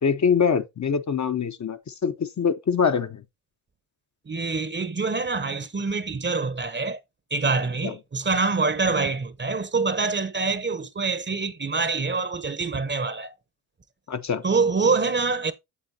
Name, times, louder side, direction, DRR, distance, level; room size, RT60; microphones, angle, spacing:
voice 1, 0.0-3.2 7.8-7.9 14.1-14.4, left 6 dB, 40° left, 0.8 m, -24 dB
voice 2, 4.3-7.0 7.3-13.3 14.4-15.5, right 4 dB, 25° right, 0.9 m, -25 dB
8.3 x 7.7 x 2.8 m
supercardioid pair, 55°, 46 cm